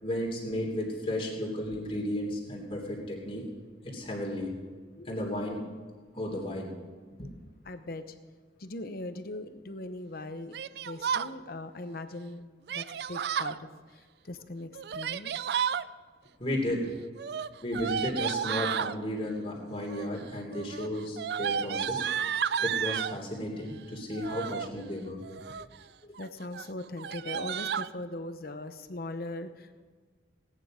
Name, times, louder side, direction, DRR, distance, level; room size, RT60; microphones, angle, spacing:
voice 1, 0.0-3.5 3.8-4.5 5.0-5.6 6.1-6.7 7.2-7.3 16.4-16.9 17.6-22.1 22.6-25.2 26.0-26.2, left 1 dB, 30° left, -1 dB, 3.1 m, -33 dB
voice 2, 7.7-8.1 8.6-10.5 10.8-15.5 17.5-17.6 23.6-23.7 26.2-29.8, left 2 dB, 55° left, 9 dB, 0.9 m, -40 dB
Yell, 10.5-11.3 12.7-13.6 14.7-15.8 17.2-19.0 19.8-20.2 20.5-23.2 24.1-24.7 25.2-25.8 26.2-26.3 26.5-26.7 27.0-27.9, right 8 dB, 60° right, 0.3 m, -32 dB
18.0 x 9.9 x 5.1 m, 1.5 s
head